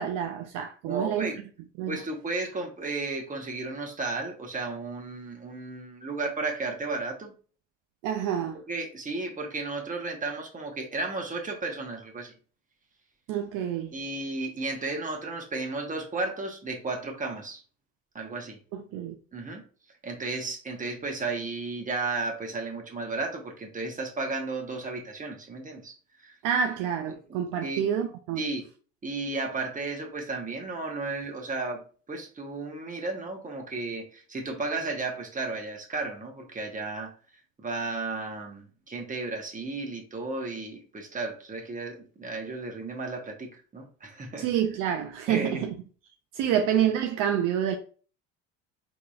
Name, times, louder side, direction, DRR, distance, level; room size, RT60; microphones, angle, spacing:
voice 1, 0.0-1.3 1.8-2.0 8.0-8.6 13.3-13.9 18.7-19.1 26.4-28.4 44.4-45.7 46.3-47.8, right 9 dB, 55° right, 0.5 m, -28 dB
voice 2, 0.8-1.4 1.9-7.3 8.5-12.3 13.9-17.6 18.1-18.6 19.3-19.6 20.0-25.9 26.2-26.4 27.1-27.8 28.4-28.6 29.0-31.8 32.1-37.1 37.6-44.5 45.3-45.7 46.5-46.8, right 3 dB, 20° right, 1.1 m, -34 dB
3.7 x 3.0 x 2.4 m
hypercardioid pair, 65°, 38 cm